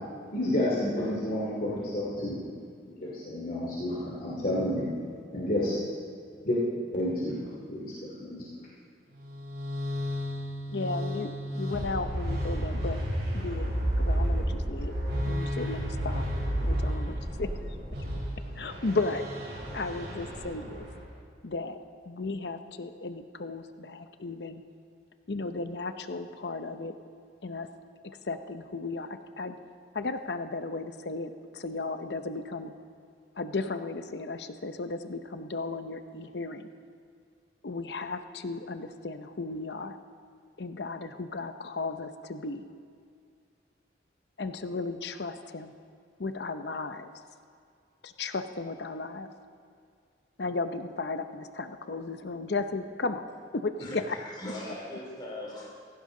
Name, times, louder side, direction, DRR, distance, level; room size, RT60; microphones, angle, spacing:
voice 1, 0.3-2.4 3.0-4.9 5.3-5.8 6.4-6.6 6.9-7.4 7.7-8.4, left 1 dB, 50° left, -6 dB, 2.7 m, -30 dB
sound 1, 9.2-21.0, equal, 65° right, 4.6 m, -32 dB
voice 2, 10.7-13.0 13.3-13.7 14.0-14.9 15.2-16.3 16.6-17.5 18.6-19.2 19.7-20.9 21.4-21.8 22.0-24.6 25.3-27.0 27.4-27.7 28.2-29.5 29.9-32.7 33.4-36.7 37.6-40.0 40.6-42.6 44.4-45.7 46.2-47.1 48.0-49.3 50.4-53.3 53.5-54.2 54.5-54.6, left 3 dB, 70° left, 9 dB, 0.7 m, -35 dB
voice 3, 53.8-55.7, left 1 dB, 25° left, -4 dB, 2.8 m, -40 dB
16.5 x 16.0 x 3.9 m, 2.3 s
head